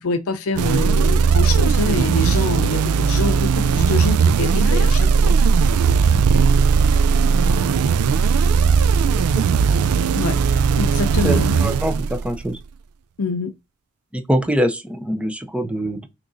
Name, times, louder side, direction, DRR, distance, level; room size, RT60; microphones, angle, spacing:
voice 1, 0.0-5.4 10.1-10.4 10.8-11.6 13.2-13.5, left 3 dB, 80° left, 0.5 m, -25 dB
sound 1, 0.5-12.5, right 5 dB, 85° right, 0.4 m, -17 dB
voice 2, 11.2-12.6 14.1-16.1, equal, 5° right, 0.5 m, -23 dB
6.1 x 2.9 x 2.6 m
head